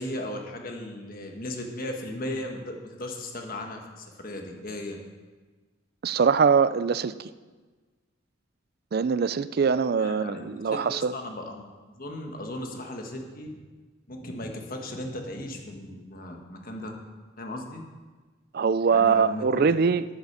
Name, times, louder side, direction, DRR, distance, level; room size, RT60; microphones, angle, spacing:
voice 1, 0.0-5.0 10.0-13.6 14.1-16.9 17.4-17.8 18.9-19.6, left 1 dB, 45° left, 2 dB, 1.4 m, -36 dB
voice 2, 6.0-7.3 8.9-11.1 18.5-20.1, right 5 dB, 45° right, 15 dB, 0.4 m, -23 dB
9.0 x 8.1 x 6.7 m, 1.3 s
head